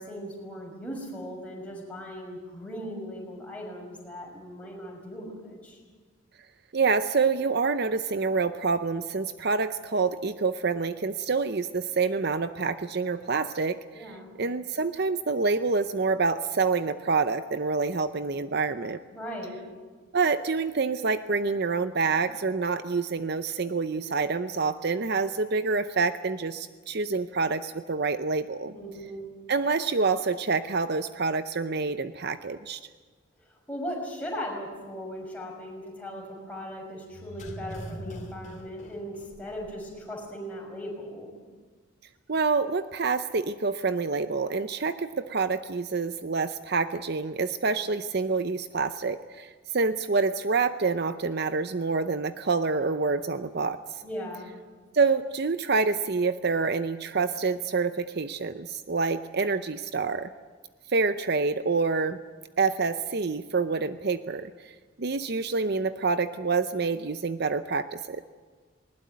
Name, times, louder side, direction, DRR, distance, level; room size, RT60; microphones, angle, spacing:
voice 1, 0.0-5.8 13.9-14.3 19.1-19.6 28.6-29.2 33.7-41.3 54.0-54.5, equal, 5° left, -2 dB, 6.1 m, -38 dB
voice 2, 6.7-19.0 20.1-28.7 29.5-32.8 42.3-54.0 54.9-60.3 60.9-62.2 62.6-68.2, right 4 dB, 50° right, 11 dB, 0.7 m, -27 dB
sound 1, 37.1-39.9 40.2-40.3, equal, 35° left, 3.1 m, -41 dB
20.0 x 20.0 x 9.4 m, 1.5 s
head